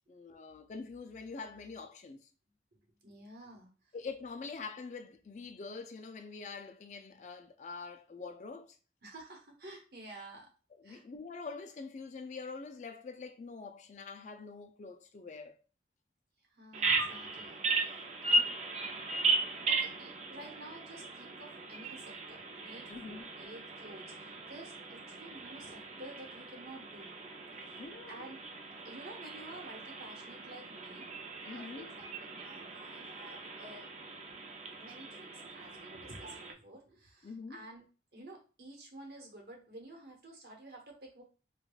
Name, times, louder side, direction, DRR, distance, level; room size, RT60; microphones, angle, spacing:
voice 1, 0.1-2.3 3.9-8.8 10.8-15.6 22.9-23.3 27.8-28.2 31.4-31.9 37.2-37.6, left 4 dB, 40° left, 0.3 m, -45 dB
voice 2, 2.7-3.7 9.0-10.5 10.8-11.0 16.5-18.5 19.7-27.1 27.6-27.8 28.1-28.4 28.8-31.1 31.5-32.1 32.4-33.9 34.8-37.8 38.1-41.2, right 1 dB, 60° right, 1.0 m, -51 dB
Bird vocalization bird call bird song, 16.7-36.5, right 3 dB, 40° right, 0.5 m, -37 dB
4.7 x 2.3 x 2.3 m
head